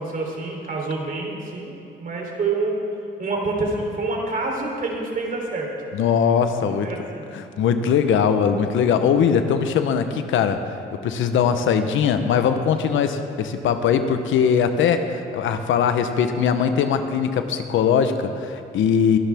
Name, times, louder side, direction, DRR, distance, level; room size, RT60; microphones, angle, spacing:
voice 1, 0.0-2.8 3.2-5.7 6.8-7.2, right 3 dB, 45° right, -1 dB, 3.5 m, -27 dB
voice 2, 5.9-6.9 7.3-10.6 10.9-19.2, left 7 dB, 80° left, 8 dB, 0.9 m, -20 dB
22.5 x 11.5 x 3.6 m, 2.8 s
cardioid pair, 90°, 20 cm